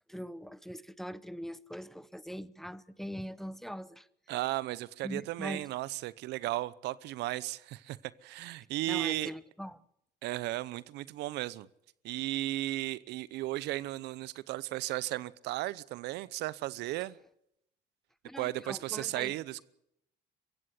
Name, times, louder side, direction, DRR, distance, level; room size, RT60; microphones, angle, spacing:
voice 1, 0.1-4.1 5.0-5.7 8.9-9.8 18.2-19.3, equal, ahead, 0.8 m, -42 dB
voice 2, 4.3-9.3 10.2-11.7 12.0-17.2 18.4-19.6, right 16 dB, 85° right, 0.8 m, -35 dB
22.5 x 16.0 x 8.4 m
cardioid pair, 110°, 17 cm